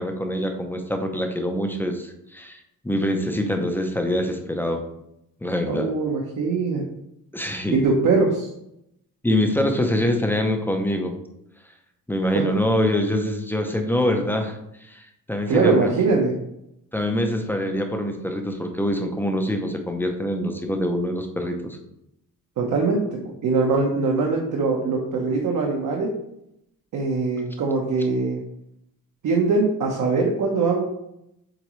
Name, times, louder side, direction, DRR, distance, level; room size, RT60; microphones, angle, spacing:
voice 1, 0.0-2.6 2.8-4.8 5.4-5.9 7.3-7.8 9.2-11.2 12.1-15.9 16.9-21.8, left 1 dB, 5° left, 4 dB, 0.6 m, -24 dB
voice 2, 5.7-6.8 7.7-8.5 12.3-12.4 15.5-16.4 22.6-26.1 26.9-28.4 29.2-30.8, right 4 dB, 55° right, -1 dB, 1.0 m, -22 dB
7.9 x 3.8 x 3.1 m, 0.80 s
cardioid pair, 145°, 36 cm